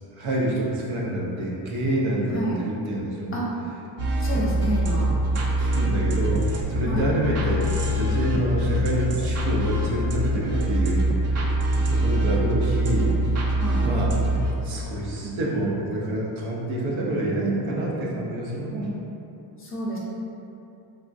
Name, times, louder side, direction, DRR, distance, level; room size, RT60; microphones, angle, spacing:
voice 1, 0.2-3.4 4.6-4.7 5.6-11.4 11.7-13.1 13.5-14.2 14.6-18.9, right 1 dB, 75° right, -4 dB, 0.8 m, -27 dB
sound 1, 4.0-14.5, right 1 dB, 35° right, 0.4 m, -24 dB
voice 2, 4.2-5.1 6.9-7.0 13.6-13.9 19.6-20.0, equal, 25° left, -5 dB, 0.6 m, -29 dB
3.5 x 2.4 x 2.5 m, 2.8 s
cardioid pair, 100°, 47 cm